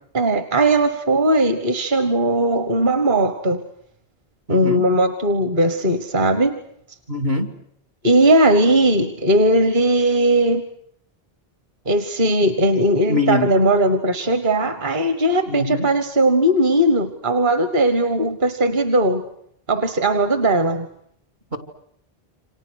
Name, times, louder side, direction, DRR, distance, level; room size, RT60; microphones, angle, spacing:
voice 1, 0.1-3.6 4.5-6.6 8.0-10.6 11.9-19.2 19.7-20.9, right 1 dB, 50° right, 9 dB, 1.5 m, -18 dB
voice 2, 4.5-4.9 7.1-7.5 13.1-13.5 15.5-15.9 21.5-21.6, left 3 dB, 75° right, 7 dB, 3.1 m, -23 dB
29.0 x 26.0 x 6.5 m, 0.69 s
omnidirectional pair, 1.1 m